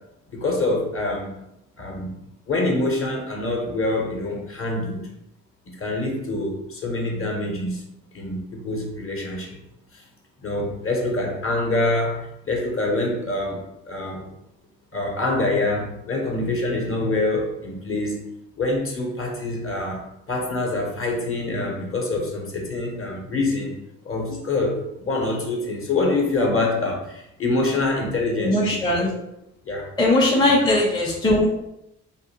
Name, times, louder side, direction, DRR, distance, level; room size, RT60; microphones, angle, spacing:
voice 1, 0.3-1.3 1.8-2.2 2.5-5.1 5.7-7.8 8.1-9.6 9.9-10.0 10.4-14.2 14.9-18.3 18.6-20.0 20.3-23.8 24.0-29.0 29.6-29.9 30.4-30.5, left 2 dB, 35° left, 0 dB, 0.9 m, -25 dB
voice 2, 28.4-29.1 30.0-31.5, left 1 dB, 10° left, -3 dB, 0.6 m, -19 dB
2.5 x 2.1 x 2.9 m, 0.85 s
hypercardioid pair, 50°, 37 cm